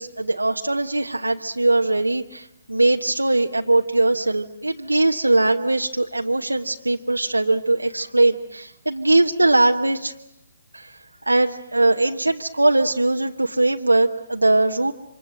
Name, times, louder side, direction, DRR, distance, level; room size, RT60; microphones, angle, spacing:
voice 1, 0.0-10.1 10.7-11.0 11.3-14.9, right 2 dB, 80° right, 4 dB, 1.2 m, -20 dB
28.5 x 26.0 x 7.7 m, 0.86 s
figure-of-eight pair, 135°, 0 cm